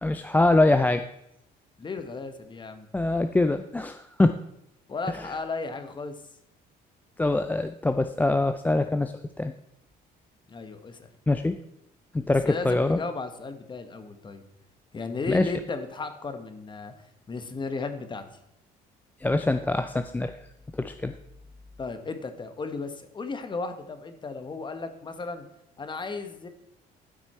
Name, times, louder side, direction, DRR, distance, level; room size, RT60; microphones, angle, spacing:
voice 1, 0.0-1.1 2.9-4.4 5.2-5.3 7.2-9.5 11.3-11.6 12.1-13.0 15.3-15.5 19.2-20.4 20.7-21.1, left 2 dB, 10° left, 9 dB, 0.4 m, -24 dB
voice 2, 1.8-2.9 4.9-6.2 10.5-11.1 12.2-14.4 14.9-16.9 17.3-18.2 21.8-25.5 25.8-26.5, left 4 dB, 25° left, 9 dB, 1.1 m, -35 dB
12.5 x 6.1 x 4.3 m, 0.80 s
cardioid pair, 110°, 17 cm